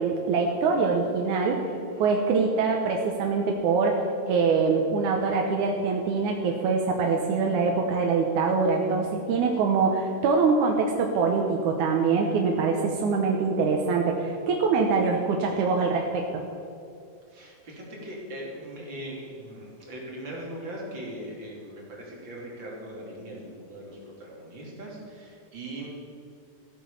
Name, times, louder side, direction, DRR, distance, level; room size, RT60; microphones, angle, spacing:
voice 1, 0.0-1.7 2.0-16.4, right 4 dB, 85° right, 1 dB, 2.4 m, -24 dB
voice 2, 17.3-25.9, right 1 dB, 40° right, -3 dB, 3.6 m, -40 dB
15.0 x 8.9 x 7.0 m, 2.5 s
omnidirectional pair, 3.3 m